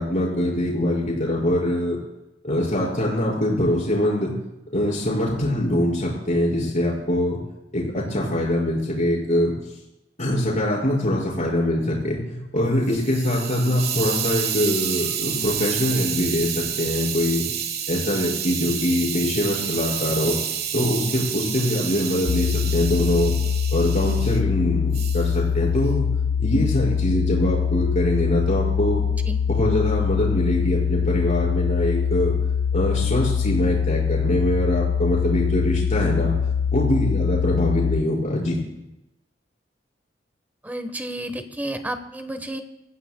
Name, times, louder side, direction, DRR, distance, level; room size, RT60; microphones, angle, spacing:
voice 1, 0.0-2.0 2.4-4.3 4.7-7.4 7.7-9.5 10.2-17.4 17.9-20.4 20.7-23.3 23.7-26.1 26.4-29.1 29.5-32.3 32.7-36.3 36.7-38.6, left 1 dB, 45° left, -3 dB, 5.3 m, -23 dB
Hiss, 12.6-24.4 24.9-25.3, right 9 dB, 60° right, 1.2 m, -29 dB
sound 1, 22.3-38.0, left 7 dB, 85° left, 0.4 m, -23 dB
voice 2, 29.1-29.4 40.6-42.6, right 1 dB, 10° right, 8 dB, 1.1 m, -31 dB
25.0 x 15.0 x 2.2 m, 0.93 s
head